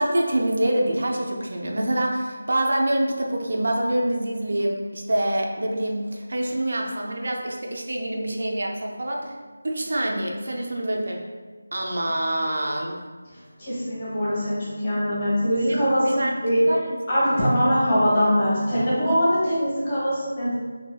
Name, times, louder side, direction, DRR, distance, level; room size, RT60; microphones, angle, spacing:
voice 1, 0.0-9.3 9.6-11.2 11.7-13.0 15.5-16.4 16.7-16.8 17.3-17.5, right 1 dB, 60° right, 0 dB, 0.5 m, -25 dB
voice 2, 13.3-16.6 17.1-20.5, equal, 25° left, -9 dB, 1.1 m, -23 dB
4.0 x 2.6 x 2.2 m, 1.4 s
figure-of-eight pair, 175°, 0 cm